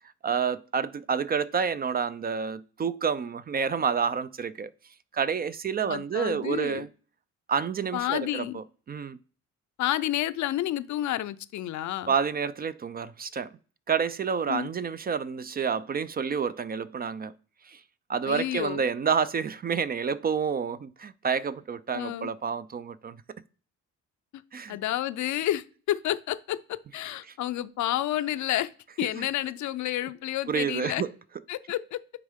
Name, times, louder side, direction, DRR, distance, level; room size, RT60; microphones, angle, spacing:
voice 1, 0.2-4.7 5.1-6.9 7.5-9.2 12.1-13.5 13.9-17.3 17.6-17.8 18.1-23.2 24.5-24.8 27.3-27.4 29.2-29.3 30.5-31.1, right 6 dB, 30° right, 0.4 m, -29 dB
voice 2, 5.9-6.9 7.9-8.6 9.8-12.1 14.5-14.7 18.2-18.8 21.9-22.3 24.7-28.7 29.0-31.0 31.5-32.0, left 13 dB, 70° left, 0.5 m, -30 dB
9.5 x 3.6 x 3.6 m
cardioid pair, 90°, 30 cm